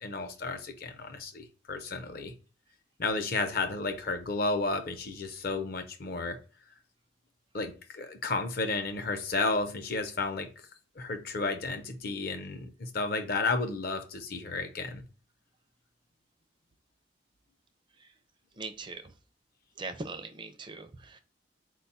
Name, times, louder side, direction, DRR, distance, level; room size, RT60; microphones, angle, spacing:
voice 1, 0.0-2.3 3.0-6.4 7.5-10.5 11.0-15.0, left 3 dB, 55° left, 0.6 m, -32 dB
voice 2, 18.6-19.1 19.8-21.2, right 3 dB, 25° right, 0.4 m, -40 dB
4.3 x 2.3 x 4.0 m
head